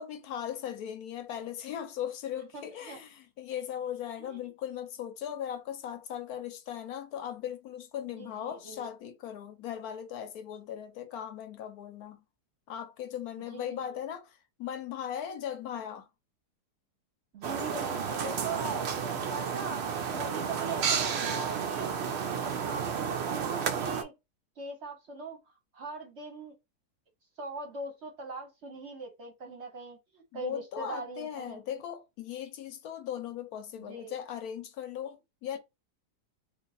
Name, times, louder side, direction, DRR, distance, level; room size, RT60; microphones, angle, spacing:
voice 1, 0.0-12.2 12.7-16.1 20.1-20.5 30.3-35.6, left 9 dB, 70° left, 1.0 m, -38 dB
voice 2, 2.5-3.0 4.2-4.4 8.1-8.9 13.5-13.8 17.3-18.9 19.3-19.8 20.2-22.0 22.4-24.1 24.6-25.4 25.7-26.5 27.4-31.6 33.8-34.1, right 3 dB, 55° right, 0.9 m, -41 dB
sound 1, 17.4-24.0, right 6 dB, 80° right, 0.5 m, -32 dB
2.8 x 2.5 x 3.9 m
omnidirectional pair, 1.8 m